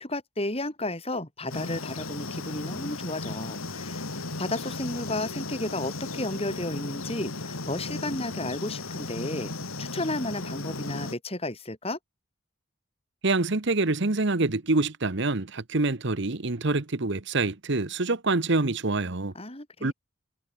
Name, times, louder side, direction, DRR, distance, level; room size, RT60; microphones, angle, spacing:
voice 1, 0.0-4.0 4.4-9.5 9.8-12.0 19.3-19.9, left 1 dB, 30° left, 5.3 m, -33 dB
sound 1, 1.5-11.1, left 2 dB, 85° left, 3.3 m, -36 dB
voice 2, 13.2-19.3 19.8-19.9, right 3 dB, 55° right, 1.2 m, -26 dB
head